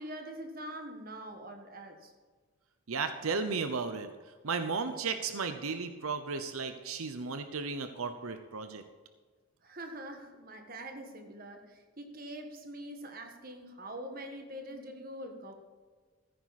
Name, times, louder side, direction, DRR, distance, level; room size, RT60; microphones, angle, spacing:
voice 1, 0.0-2.1 9.6-15.5, right 1 dB, 45° right, 4 dB, 1.6 m, -44 dB
voice 2, 2.9-4.1 4.4-8.8, right 4 dB, 90° right, 9 dB, 0.8 m, -34 dB
14.5 x 9.5 x 4.2 m, 1.5 s
head